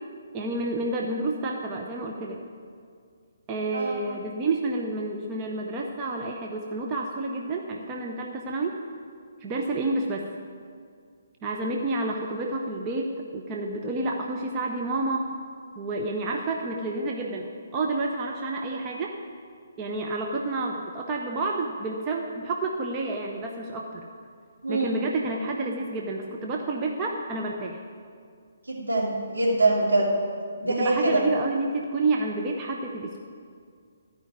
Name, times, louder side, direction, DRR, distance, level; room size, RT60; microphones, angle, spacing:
voice 1, 0.3-2.4 3.5-8.8 9.4-10.3 11.4-15.3 15.8-19.2 19.8-24.1 24.7-27.8 30.6-33.2, right 2 dB, 25° right, 0 dB, 0.8 m, -29 dB
voice 2, 24.6-24.9 28.7-30.1 30.6-31.2, right 2 dB, 70° right, -4 dB, 3.0 m, -24 dB
13.5 x 5.2 x 9.2 m, 2.2 s
figure-of-eight pair, 135°, 0 cm